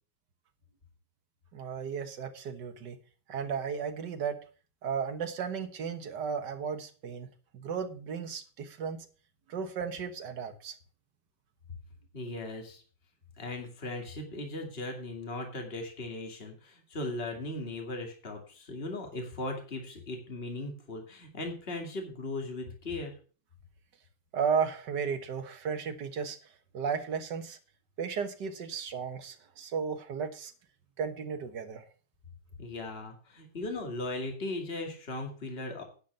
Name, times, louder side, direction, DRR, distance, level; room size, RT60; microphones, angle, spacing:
voice 1, 1.5-3.0 3.3-4.4 4.8-7.3 7.5-9.0 9.5-10.7 24.3-26.4 26.7-27.6 28.0-30.5 31.0-31.8, right 6 dB, 60° right, 8 dB, 1.9 m, -34 dB
voice 2, 12.1-12.8 13.4-23.1 32.6-35.8, left 2 dB, 30° left, 2 dB, 2.4 m, -38 dB
10.5 x 6.0 x 6.8 m, 0.39 s
omnidirectional pair, 2.1 m